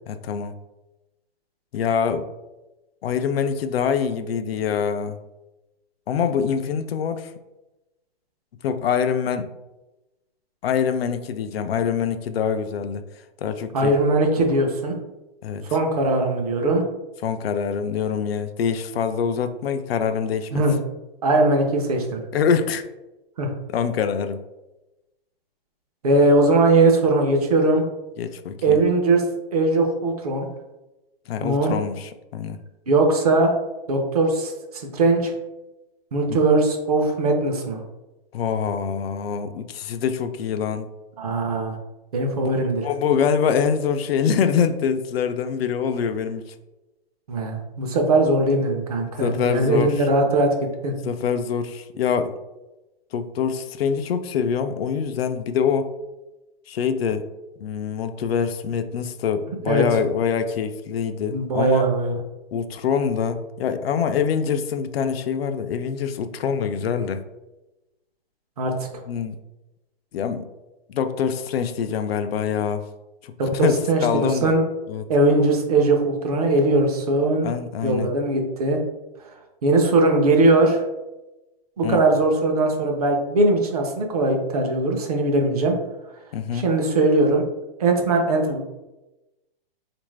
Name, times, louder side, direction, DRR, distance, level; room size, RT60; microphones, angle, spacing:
voice 1, 0.1-0.5 1.7-2.2 3.0-5.2 6.1-7.3 8.6-9.5 10.6-13.0 13.4-13.9 15.4-15.6 17.2-20.6 22.3-22.8 23.7-24.4 28.2-28.8 31.3-32.6 36.3-36.4 38.3-40.9 42.4-42.6 42.8-46.4 49.2-50.1 51.0-52.3 53.1-55.9 56.7-57.2 57.6-61.9 62.5-67.2 69.1-69.4 70.1-70.4 70.9-72.9 73.2-74.5 74.9-75.1 77.4-78.1 81.8-82.0 86.3-86.7, left 7 dB, 80° left, 8 dB, 0.5 m, -24 dB
voice 2, 13.7-14.9 15.7-16.8 20.5-20.8 21.2-22.2 23.4-23.5 26.0-27.8 28.6-29.2 29.5-30.5 31.4-31.7 32.9-33.6 33.9-35.3 36.1-37.8 41.2-41.8 42.1-42.8 47.3-51.0 59.7-59.9 61.3-62.1 68.6-68.7 73.4-74.6 75.1-77.5 77.8-78.8 79.6-80.8 81.8-85.7 86.5-87.4 87.8-88.6, right 2 dB, 40° right, 2 dB, 0.6 m, -20 dB
3.8 x 2.5 x 3.1 m, 1.0 s
hypercardioid pair, 175°, 30 cm